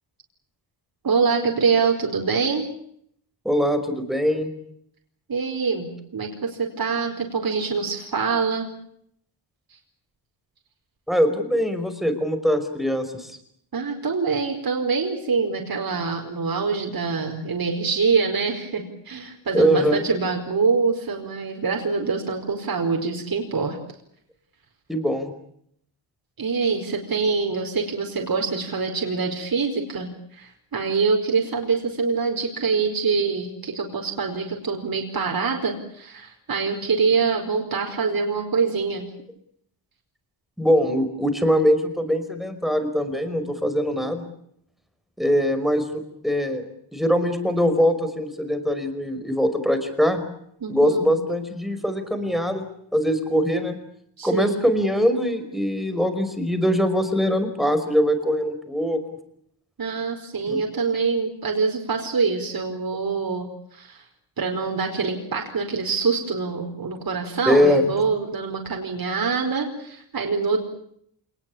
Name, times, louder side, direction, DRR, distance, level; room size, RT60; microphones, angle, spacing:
voice 1, 1.0-2.7 5.3-8.7 13.7-23.8 26.4-39.0 50.6-51.2 54.2-54.7 59.8-64.0 64.4-70.6, right 5 dB, 45° right, 2 dB, 4.9 m, -25 dB
voice 2, 3.5-4.5 11.1-13.3 19.5-20.0 24.9-25.3 40.6-44.3 45.2-46.6 46.9-50.2 50.7-52.6 52.9-53.8 54.2-59.0 60.5-60.8 67.5-67.9, equal, ahead, 8 dB, 5.2 m, -22 dB
27.5 x 20.0 x 8.6 m, 0.71 s
cardioid pair, 110°, 48 cm